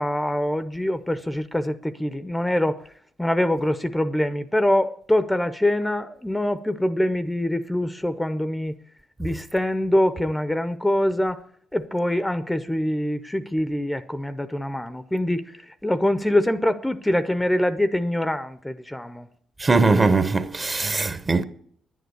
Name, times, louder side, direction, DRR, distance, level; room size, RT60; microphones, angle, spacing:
voice 1, 0.0-2.8 3.2-8.8 9.2-11.4 11.7-15.6 15.8-19.3, left 1 dB, 10° left, 0.6 m, -24 dB
voice 2, 19.6-21.4, right 3 dB, 25° right, 0.9 m, -20 dB
10.5 x 9.4 x 8.0 m
cardioid pair, 90°, 0 cm